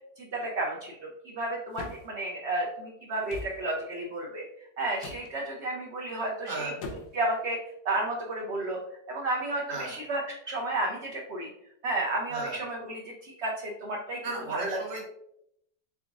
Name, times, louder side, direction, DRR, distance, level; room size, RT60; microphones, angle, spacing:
voice 1, 0.2-4.4 4.8-6.7 7.1-7.6 7.8-8.8 9.1-11.5 11.8-14.2 14.5-14.8, right 2 dB, 65° right, -2 dB, 0.7 m, -32 dB
sound 1, 1.7-2.1 3.3-3.6 5.0-5.3 6.8-7.2, left 3 dB, 80° left, 1.2 m, -40 dB
voice 2, 6.5-6.8 9.7-9.9 12.3-12.6 14.2-15.1, right 3 dB, 35° right, -4 dB, 1.0 m, -35 dB
3.9 x 3.4 x 2.4 m, 0.76 s
omnidirectional pair, 1.7 m